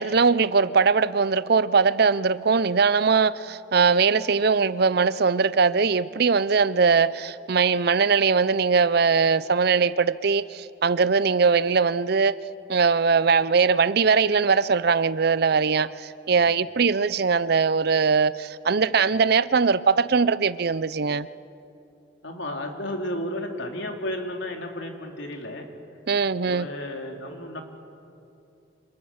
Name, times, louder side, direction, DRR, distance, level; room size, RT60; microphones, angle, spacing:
voice 1, 0.0-12.4 12.7-21.3 26.1-26.7, right 5 dB, 55° right, 16 dB, 0.6 m, -21 dB
voice 2, 22.2-25.7 26.4-27.6, left 1 dB, 75° left, 3 dB, 3.1 m, -33 dB
28.5 x 26.5 x 7.2 m, 2.7 s
head